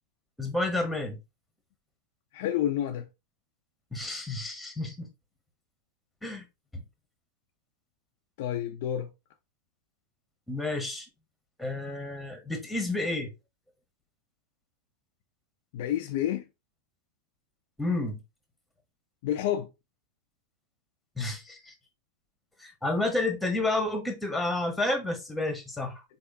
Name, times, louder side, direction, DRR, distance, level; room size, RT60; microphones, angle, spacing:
voice 1, 0.4-1.2 3.9-5.1 6.2-6.4 6.7-6.8 10.5-11.1 11.6-13.3 17.8-18.2 21.2-21.7 22.6-26.0, left 2 dB, 5° left, 1.2 m, -30 dB
voice 2, 2.3-3.0 8.4-9.1 15.7-16.4 19.2-19.7, left 11 dB, 50° left, 0.4 m, -29 dB
4.1 x 3.5 x 2.7 m
figure-of-eight pair, 90°, 0 cm